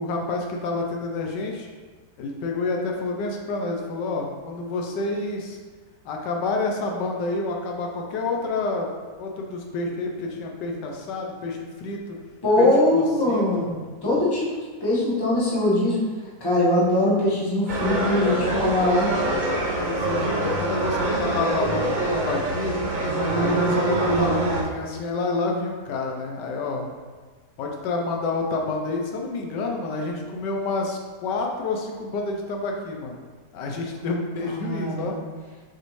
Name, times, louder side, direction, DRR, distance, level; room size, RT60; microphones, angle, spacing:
voice 1, 0.0-1.7 2.2-5.6 6.0-8.9 9.2-12.2 12.6-13.6 19.8-22.8 23.3-26.9 27.6-33.2 33.5-35.2, left 3 dB, 90° left, 1 dB, 1.3 m, -28 dB
voice 2, 12.4-14.5 14.8-16.0 16.4-19.1 34.4-35.2, left 1 dB, 15° left, -7 dB, 1.0 m, -22 dB
sound 1, 17.7-24.6, right 2 dB, 60° right, 0.5 m, -24 dB
6.4 x 2.6 x 3.2 m, 1.4 s
omnidirectional pair, 1.8 m